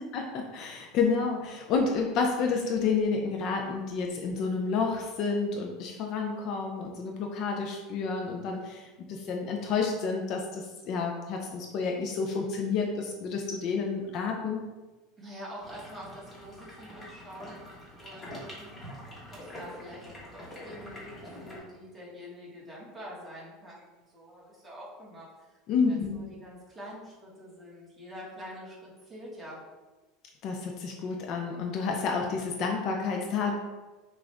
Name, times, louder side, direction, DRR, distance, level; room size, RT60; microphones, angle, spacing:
voice 1, 0.1-14.6 25.7-26.2 30.4-33.5, left 5 dB, 45° left, 1 dB, 0.5 m, -30 dB
voice 2, 15.2-17.6 18.0-18.7 19.3-29.6, equal, 10° right, -7 dB, 1.5 m, -46 dB
sound 1, 15.6-21.6, equal, 15° left, 1.2 m, -45 dB
6.0 x 2.5 x 3.3 m, 1.2 s
supercardioid pair, 150°, 0 cm